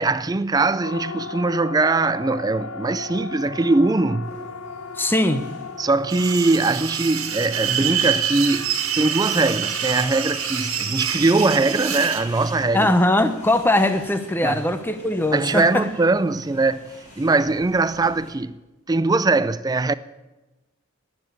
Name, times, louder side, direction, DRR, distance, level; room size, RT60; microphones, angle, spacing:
voice 1, 0.0-4.3 5.8-8.7 8.9-12.9 14.4-14.7 15.3-18.6 18.9-19.9, right 3 dB, 15° right, 0.4 m, -21 dB
Siren, 0.8-15.1, left 4 dB, 75° left, 0.7 m, -39 dB
sound 1, 4.2-18.3, left 1 dB, 35° left, 5.7 m, -44 dB
voice 2, 5.0-5.5 12.7-15.9, left 1 dB, 10° left, 0.8 m, -20 dB
sound 2, 6.1-12.2, right 9 dB, 75° right, 1.8 m, -26 dB
11.5 x 9.9 x 9.3 m
head